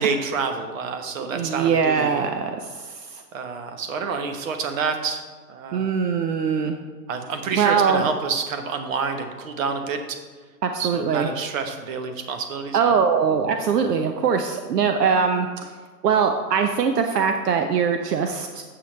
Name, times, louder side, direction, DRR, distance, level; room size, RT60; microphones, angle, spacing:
voice 1, 0.0-2.2 3.3-5.2 5.5-5.9 7.1-10.2 10.8-13.0, right 5 dB, 55° right, 6 dB, 1.1 m, -28 dB
voice 2, 1.3-3.2 5.7-6.8 7.5-8.1 10.6-11.3 12.7-15.5 16.0-18.6, right 6 dB, 75° right, 6 dB, 0.8 m, -22 dB
8.1 x 7.7 x 3.2 m, 1.5 s
hypercardioid pair, 145°, 49 cm